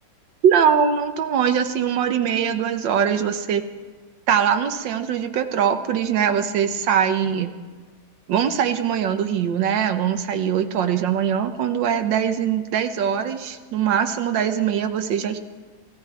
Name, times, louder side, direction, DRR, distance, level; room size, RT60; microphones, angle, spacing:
voice 1, 0.4-3.6 4.3-7.5 8.3-15.4, right 8 dB, 85° right, 8 dB, 1.5 m, -22 dB
15.0 x 14.5 x 4.6 m, 1.4 s
omnidirectional pair, 2.0 m